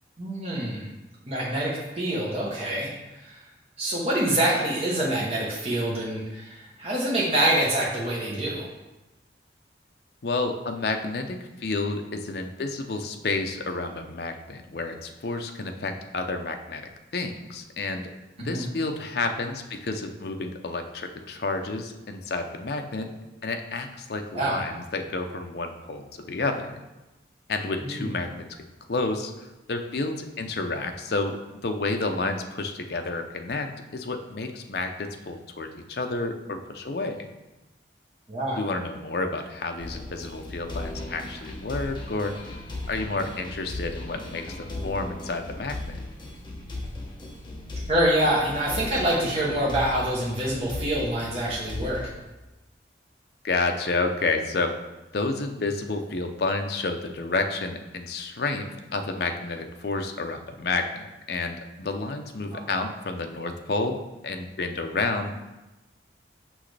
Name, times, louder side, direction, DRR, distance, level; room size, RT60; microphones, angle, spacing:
voice 1, 0.2-0.9 1.3-3.4 3.8-8.7 18.4-18.7 24.3-24.6 27.8-28.1 38.3-38.6 47.9-52.0 62.5-62.6, right 1 dB, 30° right, -5 dB, 1.0 m, -26 dB
voice 2, 10.2-16.8 17.1-18.1 18.4-23.1 23.4-26.7 27.5-28.6 28.9-37.2 38.6-42.3 42.9-46.0 53.4-54.8 55.1-65.4, left 3 dB, 55° left, 5 dB, 0.6 m, -30 dB
sound 1, 39.8-52.1, left 2 dB, 25° left, 1.0 m, -37 dB
6.2 x 5.9 x 3.3 m, 1.0 s
head